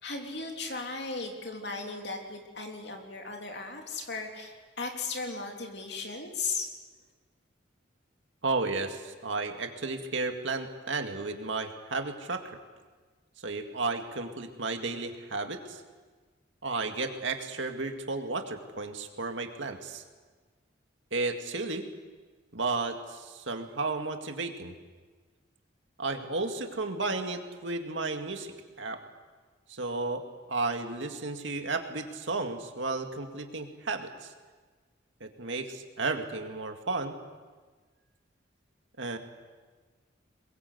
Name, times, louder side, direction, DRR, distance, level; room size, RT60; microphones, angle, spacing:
voice 1, 0.0-6.7, left 4 dB, 60° left, 2 dB, 3.4 m, -36 dB
voice 2, 8.4-12.4 13.4-15.8 16.6-20.0 21.1-21.9 22.5-24.7 26.0-28.5 28.8-29.0 29.7-30.2 30.5-34.3 35.2-37.2 39.0-39.2, right 3 dB, 75° right, 5 dB, 2.2 m, -33 dB
22.0 x 22.0 x 8.1 m, 1.4 s
head